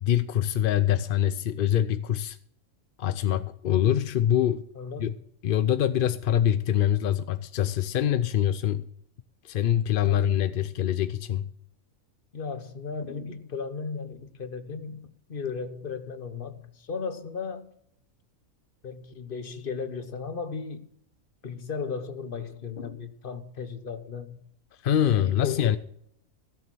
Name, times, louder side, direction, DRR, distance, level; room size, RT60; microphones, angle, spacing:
voice 1, 0.0-2.4 3.0-4.6 5.0-5.1 5.4-8.9 9.4-11.5 24.8-25.8, left 10 dB, 60° left, 0.6 m, -24 dB
voice 2, 4.7-5.2 10.0-10.2 12.3-17.7 18.8-20.9 21.4-24.5 25.0-25.8, left 5 dB, 45° left, 1.2 m, -36 dB
16.0 x 7.0 x 6.1 m
omnidirectional pair, 1.4 m